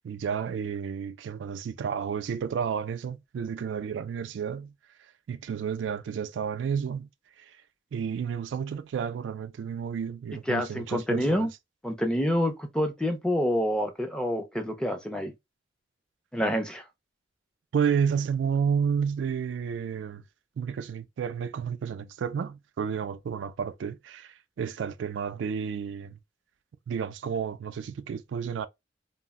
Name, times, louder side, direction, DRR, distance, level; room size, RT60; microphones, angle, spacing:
voice 1, 0.0-4.7 5.3-7.1 7.4-7.6 7.9-11.5 17.7-20.2 20.6-26.2 26.9-28.7, right 7 dB, 80° right, 0.3 m, -31 dB
voice 2, 10.5-11.5 11.8-15.3 16.3-16.8, equal, 5° left, 0.5 m, -27 dB
2.4 x 2.0 x 3.5 m
head